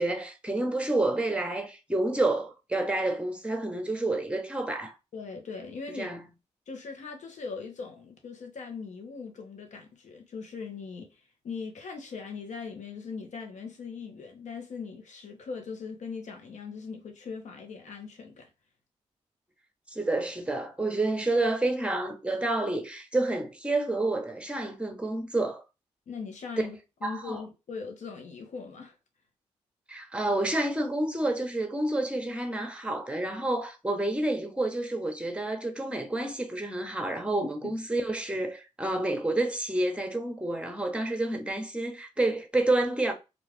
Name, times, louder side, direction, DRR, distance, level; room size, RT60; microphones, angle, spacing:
voice 1, 0.0-4.9 6.0-6.2 19.9-25.6 27.0-27.4 29.9-43.1, right 2 dB, 10° right, 0.9 m, -29 dB
voice 2, 5.1-6.1 6.7-18.5 26.1-28.9 37.4-37.7, left 5 dB, 65° left, 0.9 m, -40 dB
2.5 x 2.3 x 3.3 m
supercardioid pair, 50°, 13 cm